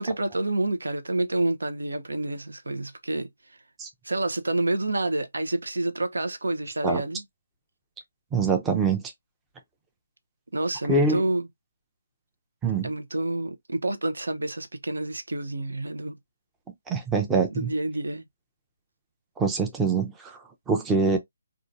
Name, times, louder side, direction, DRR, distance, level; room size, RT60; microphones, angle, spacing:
voice 1, 0.0-3.3 4.0-7.2 10.5-11.5 12.8-16.2 17.5-18.2, right 2 dB, 85° right, 0.7 m, -28 dB
voice 2, 8.3-9.1 10.9-11.2 12.6-12.9 16.9-17.7 19.4-20.4 20.7-21.2, right 4 dB, 10° right, 0.5 m, -24 dB
3.8 x 2.4 x 2.5 m
hypercardioid pair, 155°, 0 cm